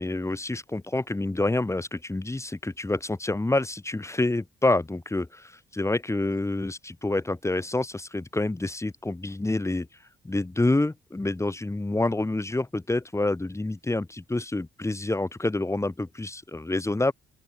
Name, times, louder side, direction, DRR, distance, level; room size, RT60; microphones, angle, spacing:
voice 1, 0.0-9.9 10.2-17.1, left 2 dB, 15° left, 3.3 m, -27 dB
open air
cardioid pair, 90°, 20 cm